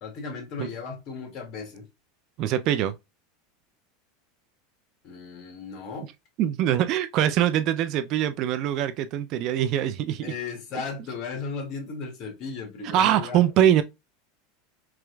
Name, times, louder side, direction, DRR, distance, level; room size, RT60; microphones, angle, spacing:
voice 1, 0.0-1.8 5.0-6.1 10.2-13.4, left 5 dB, 40° left, 2.1 m, -36 dB
voice 2, 2.4-2.9 6.4-10.3 12.9-13.8, right 11 dB, 50° right, 0.4 m, -23 dB
4.7 x 3.0 x 2.3 m
supercardioid pair, 130°, 0 cm